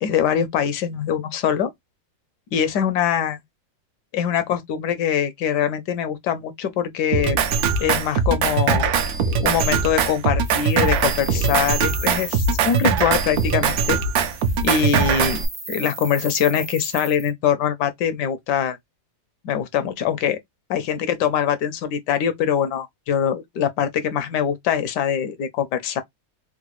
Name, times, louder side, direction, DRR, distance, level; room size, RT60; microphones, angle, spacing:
voice 1, 0.0-1.7 2.5-3.4 4.1-7.4 7.8-8.8 9.4-14.0 14.6-15.4 15.7-18.8 19.4-20.4 20.7-26.0, left 8 dB, 75° left, 1.1 m, -23 dB
Drum kit, 7.1-15.5, right 6 dB, 70° right, 1.0 m, -21 dB
sound 1, 10.4-13.1 13.3-13.6 14.1-17.3, right 2 dB, 35° right, 0.4 m, -36 dB
3.7 x 2.2 x 3.0 m
omnidirectional pair, 2.0 m